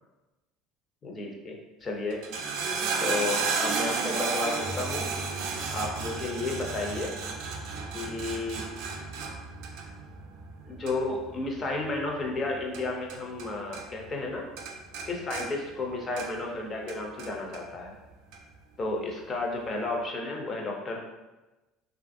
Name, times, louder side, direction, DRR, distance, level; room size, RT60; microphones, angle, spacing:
voice 1, 1.0-2.2 3.0-5.1 5.7-7.2 7.9-8.7 10.7-14.4 15.1-17.9 18.8-21.0, left 2 dB, 25° left, 0 dB, 0.5 m, -32 dB
sound 1, 2.1-13.5 13.7-14.3 14.6-16.5 16.9-17.6 18.3-18.4, right 4 dB, 65° right, 0.4 m, -33 dB
3.1 x 2.4 x 2.5 m, 1.1 s
cardioid pair, 155°, 0 cm